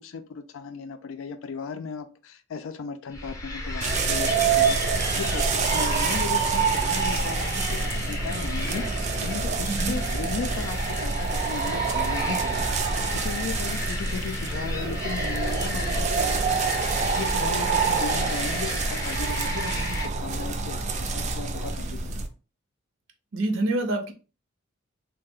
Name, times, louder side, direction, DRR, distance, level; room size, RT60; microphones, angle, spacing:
voice 1, 0.0-22.2, left 5 dB, 75° left, 8 dB, 0.4 m, -36 dB
sound 1, 3.1-20.1, left 1 dB, 15° left, 0.6 m, -33 dB
sound 2, 3.8-22.3, right 5 dB, 35° right, 0.3 m, -27 dB
voice 2, 23.3-24.1, right 2 dB, 70° right, 5 dB, 0.6 m, -26 dB
3.2 x 2.0 x 3.5 m, 0.34 s
head